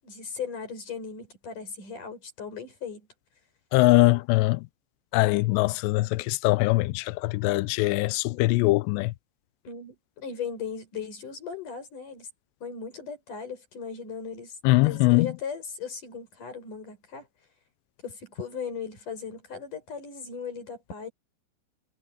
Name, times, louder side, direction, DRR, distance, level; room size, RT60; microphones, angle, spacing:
voice 1, 0.0-3.1 9.6-12.3 12.6-14.5 14.8-17.3 18.0-21.1, left 6 dB, 40° left, 8.1 m, -37 dB
voice 2, 3.7-4.6 5.1-9.1 14.6-15.3, left 22 dB, 85° left, 2.5 m, -22 dB
omnidirectional pair, 5.5 m